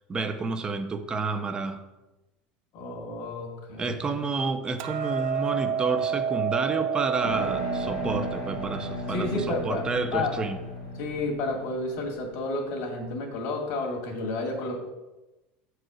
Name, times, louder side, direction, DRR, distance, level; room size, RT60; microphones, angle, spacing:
voice 1, 0.1-1.8 3.8-10.6, right 4 dB, 20° right, 8 dB, 0.7 m, -30 dB
voice 2, 2.7-4.0 9.1-10.4 11.0-14.8, left 2 dB, 60° left, 1 dB, 2.3 m, -31 dB
Hammer, 4.8-11.0, right 8 dB, 60° right, 0.6 m, -31 dB
sound 1, 7.2-12.7, left 2 dB, 80° left, 1.6 m, -36 dB
7.7 x 4.9 x 6.2 m, 1.0 s
cardioid pair, 150°, 5 cm